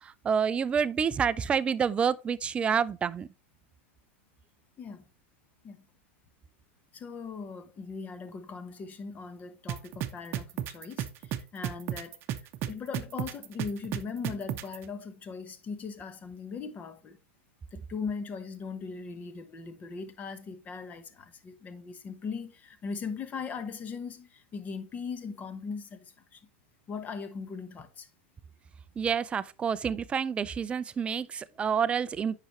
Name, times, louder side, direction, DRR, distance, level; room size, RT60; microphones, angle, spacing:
voice 1, 0.0-3.3 29.0-32.4, right 7 dB, 20° right, 0.4 m, -28 dB
voice 2, 6.9-12.2 12.7-17.2 17.7-26.4 26.9-28.1, left 5 dB, 25° left, 1.1 m, -39 dB
sound 1, 9.7-14.8, right 11 dB, 40° right, 0.8 m, -32 dB
9.0 x 5.8 x 3.1 m
supercardioid pair, 135°, 6 cm